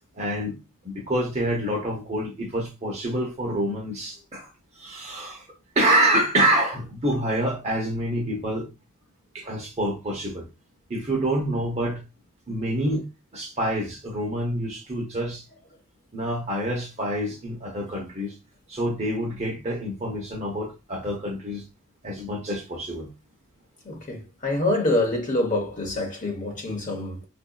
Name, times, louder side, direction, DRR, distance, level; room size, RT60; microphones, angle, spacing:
voice 1, 0.2-0.6 0.8-5.5 5.7-8.7 9.3-10.5 10.9-12.0 12.5-13.0 13.3-15.4 16.1-18.4 18.7-21.6 22.0-23.1, right 1 dB, 30° right, 0.8 m, -27 dB
voice 2, 23.8-27.2, left 1 dB, 35° left, 0.9 m, -26 dB
4.0 x 2.6 x 2.2 m
head